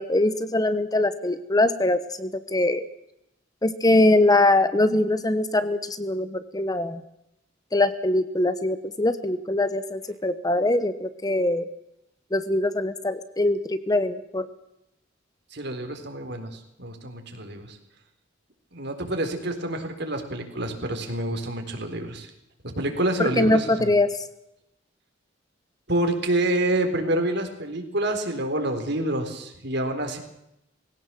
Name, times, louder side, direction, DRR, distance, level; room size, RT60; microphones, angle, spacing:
voice 1, 0.0-2.8 3.6-7.0 7.7-11.7 12.3-14.5 23.4-24.1, left 2 dB, 20° left, 12 dB, 1.1 m, -22 dB
voice 2, 15.5-17.8 18.7-22.3 22.6-23.9 25.9-30.2, right 1 dB, 60° right, 6 dB, 3.9 m, -27 dB
20.5 x 17.0 x 7.6 m, 0.81 s
head